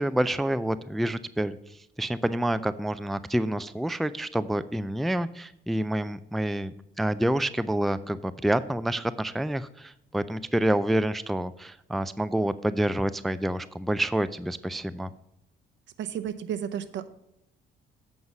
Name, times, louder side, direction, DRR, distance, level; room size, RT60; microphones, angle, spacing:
voice 1, 0.0-1.6 2.0-15.1, right 1 dB, ahead, 14 dB, 0.3 m, -28 dB
voice 2, 16.0-17.1, right 9 dB, 65° right, 11 dB, 0.7 m, -32 dB
8.0 x 5.4 x 5.9 m, 0.81 s
cardioid pair, 90°, 20 cm